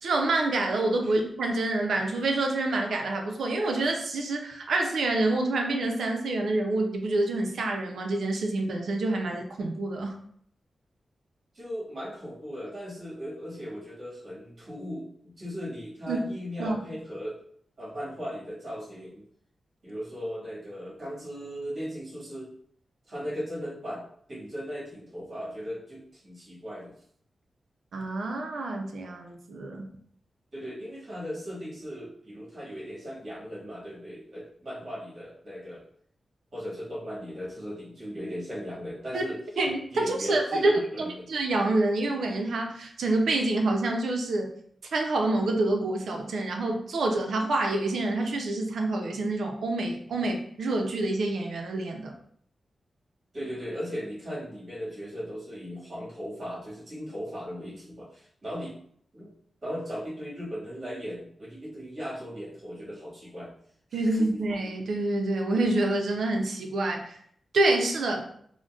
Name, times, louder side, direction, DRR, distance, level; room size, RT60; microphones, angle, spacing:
voice 1, 0.0-10.1 16.1-16.2 16.6-16.8 27.9-29.9 39.1-39.2 39.6-44.5 44.9-52.1 63.9-67.2 67.5-68.3, right 2 dB, 85° right, 2 dB, 0.5 m, -27 dB
voice 2, 11.5-17.4 17.8-19.2 19.8-22.5 23.1-24.0 24.3-26.9 30.5-35.8 36.5-39.4 39.9-41.3 53.3-58.7 59.1-59.3 59.6-63.5 63.9-64.4, equal, 45° right, -7 dB, 1.5 m, -37 dB
3.8 x 2.1 x 2.3 m, 0.64 s
wide cardioid pair, 130°, 0 cm